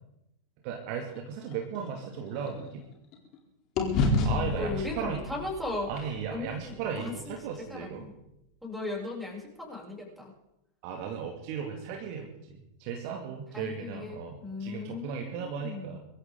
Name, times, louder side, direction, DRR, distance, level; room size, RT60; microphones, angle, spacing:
voice 1, 0.6-2.8 4.2-5.2 5.9-8.1 10.8-16.0, right 7 dB, 45° right, 2 dB, 2.5 m, -36 dB
sound 1, 1.1-3.4 3.8-8.0, left 2 dB, 35° left, 3.8 m, -33 dB
voice 2, 3.8-5.9 6.3-7.1 7.7-8.1 8.6-10.3 13.5-16.0, left 3 dB, ahead, -4 dB, 7.1 m, -37 dB
23.5 x 14.0 x 4.0 m, 0.87 s
figure-of-eight pair, 90°, 0 cm